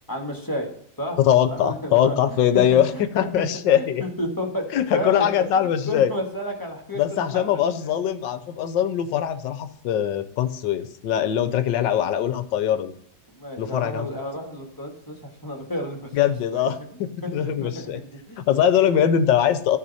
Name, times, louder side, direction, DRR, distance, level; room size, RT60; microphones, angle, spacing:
voice 1, 0.1-0.7 1.0-1.2 1.5-3.0 3.4-3.5 3.7-4.7 4.9-7.9 13.3-16.1 16.5-18.6 18.9-19.0, equal, 10° left, 1 dB, 1.5 m, -32 dB
voice 2, 1.2-4.0 4.7-6.1 7.0-12.9 13.6-14.1 16.1-18.0 18.5-19.8, left 9 dB, 70° left, 11 dB, 1.4 m, -22 dB
13.5 x 5.1 x 4.2 m, 0.69 s
omnidirectional pair, 2.2 m